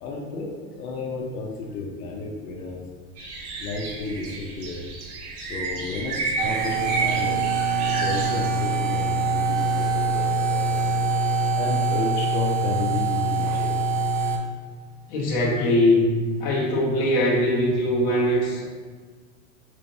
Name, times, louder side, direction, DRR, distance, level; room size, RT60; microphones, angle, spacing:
voice 1, 0.0-2.8 3.6-4.8 5.4-7.4 7.9-11.0 11.6-13.7, left 3 dB, 90° left, -1 dB, 0.8 m, -32 dB
sound 1, 3.2-8.5, right 3 dB, 85° right, 1.0 m, -31 dB
sound 2, 6.4-14.4, right 3 dB, 65° right, 0.7 m, -24 dB
voice 2, 15.1-16.1 16.4-18.6, left 1 dB, 50° left, -4 dB, 1.1 m, -21 dB
4.2 x 3.0 x 2.7 m, 1.5 s
supercardioid pair, 160°, 44 cm